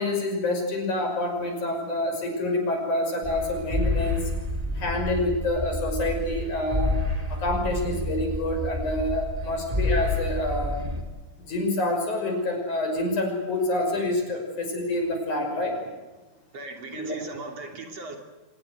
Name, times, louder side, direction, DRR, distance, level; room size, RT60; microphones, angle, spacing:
voice 1, 0.0-4.3 4.8-7.0 7.3-10.8 11.4-15.8 16.9-17.2, left 1 dB, 65° left, 4 dB, 7.2 m, -27 dB
sound 1, 3.2-11.0, left 1 dB, 10° right, 2.5 m, -29 dB
voice 2, 16.5-18.2, right 3 dB, 50° right, 4 dB, 4.2 m, -38 dB
25.5 x 20.5 x 8.1 m, 1.2 s
omnidirectional pair, 3.6 m